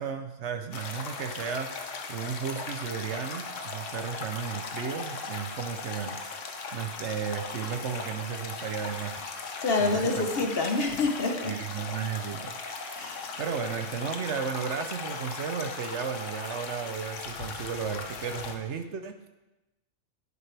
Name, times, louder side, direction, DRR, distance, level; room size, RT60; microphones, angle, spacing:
voice 1, 0.0-10.2 11.5-13.1 13.4-19.3, right 7 dB, 65° right, 8 dB, 1.0 m, -34 dB
sound 1, 0.7-18.5, left 4 dB, 70° left, 1.3 m, -38 dB
voice 2, 9.6-11.6 12.9-13.3, left 3 dB, 50° left, 4 dB, 1.2 m, -27 dB
11.0 x 9.8 x 3.4 m, 1.0 s
omnidirectional pair, 1.3 m